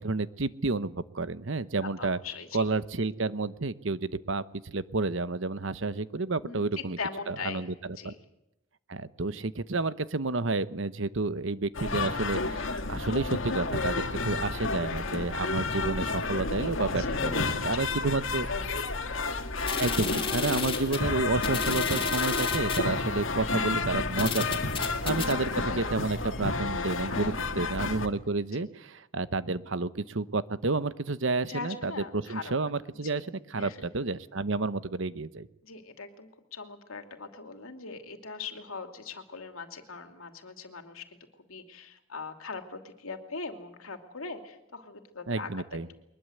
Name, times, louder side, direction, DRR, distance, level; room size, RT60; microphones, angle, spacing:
voice 1, 0.0-2.2 2.5-7.0 7.3-7.7 8.0-8.1 8.9-18.5 19.7-35.5 45.3-45.9, right 3 dB, 65° right, 14 dB, 1.0 m, -30 dB
voice 2, 1.8-2.6 6.4-7.7 8.0-8.2 16.6-18.1 18.5-19.0 19.3-19.5 24.7-25.4 27.1-27.8 28.5-28.6 31.5-32.5 32.8-33.2 33.6-33.9 35.6-45.8, left 4 dB, 85° left, 6 dB, 2.8 m, -41 dB
sound 1, 11.7-28.1, left 3 dB, 65° left, 2.1 m, -31 dB
sound 2, 19.6-22.9 23.6-23.7 24.2-25.3, left 5 dB, 25° left, 2.7 m, -33 dB
22.5 x 21.0 x 8.0 m, 0.87 s
head